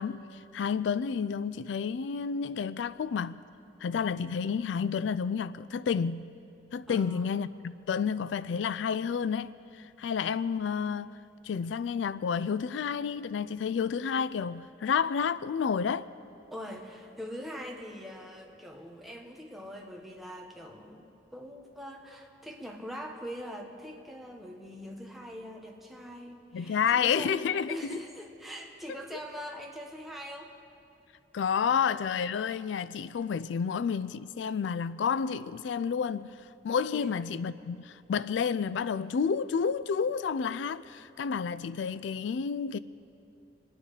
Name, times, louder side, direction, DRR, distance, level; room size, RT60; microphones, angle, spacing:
voice 1, 0.0-3.4 3.8-6.3 6.7-11.2 11.4-16.1 26.5-27.8 31.3-36.3 36.6-42.8, left 6 dB, 85° left, 0.3 m, -30 dB
voice 2, 6.8-7.3 16.5-30.5 31.6-31.8 36.9-37.1, equal, ahead, 1.4 m, -43 dB
25.5 x 9.7 x 5.0 m
head